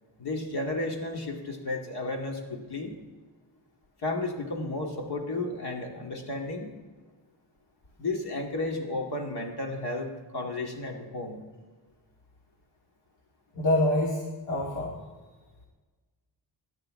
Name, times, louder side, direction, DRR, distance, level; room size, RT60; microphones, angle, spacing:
voice 1, 0.2-3.0 4.0-6.8 8.0-11.4, left 2 dB, 65° left, 1 dB, 2.4 m, -33 dB
voice 2, 13.5-15.0, left 1 dB, 85° left, -2 dB, 2.2 m, -26 dB
17.0 x 11.0 x 3.9 m, 1.4 s
cardioid pair, 100°, 42 cm